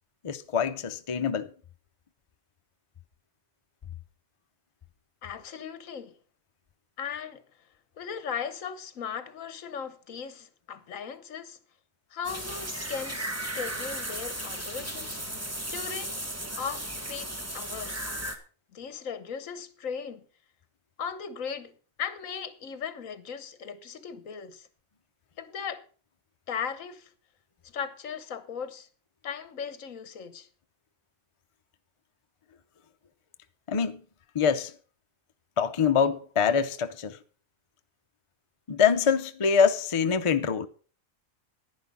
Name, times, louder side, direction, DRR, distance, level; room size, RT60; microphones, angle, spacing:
voice 1, 0.2-1.5 33.7-34.0 34.3-34.7 35.6-37.2 38.7-40.7, left 6 dB, 40° left, 0.4 m, -24 dB
voice 2, 5.2-6.2 7.0-7.4 8.0-11.6 12.1-15.2 15.7-16.2 16.6-18.1 18.7-20.3 21.0-24.7 25.4-25.8 26.5-27.1 27.6-28.9 29.2-30.5, left 7 dB, 70° left, 1.4 m, -37 dB
sound 1, 12.2-18.4, right 1 dB, 10° right, 1.2 m, -35 dB
10.5 x 10.0 x 5.3 m
omnidirectional pair, 1.5 m